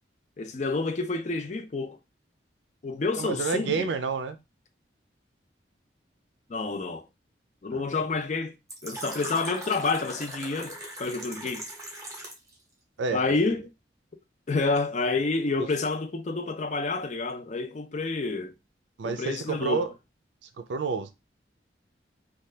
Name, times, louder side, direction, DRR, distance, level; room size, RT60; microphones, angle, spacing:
voice 1, 0.4-2.0 2.8-3.9 6.5-7.1 7.6-8.5 8.8-11.6 13.1-13.7 14.5-18.5 19.0-19.9, left 3 dB, 40° left, 0.4 m, -29 dB
voice 2, 3.2-4.4 7.7-7.8 13.0-13.2 19.0-19.9 20.7-21.1, right 5 dB, 80° right, 0.4 m, -29 dB
Fill (with liquid), 8.7-12.5, right 1 dB, 15° right, 0.8 m, -39 dB
2.8 x 2.3 x 3.2 m
head